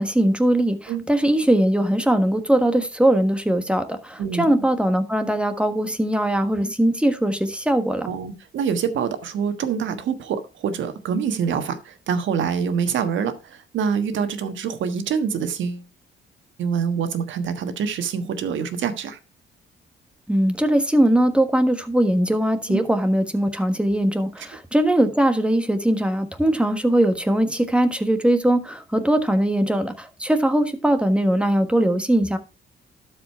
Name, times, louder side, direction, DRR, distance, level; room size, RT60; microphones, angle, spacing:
voice 1, 0.0-8.1 20.3-32.4, right 1 dB, 5° right, 1.4 m, -20 dB
voice 2, 4.2-4.7 8.0-15.8 16.6-19.2 22.7-22.8, right 7 dB, 75° right, 1.4 m, -25 dB
12.0 x 5.1 x 4.6 m
cardioid pair, 90°, 20 cm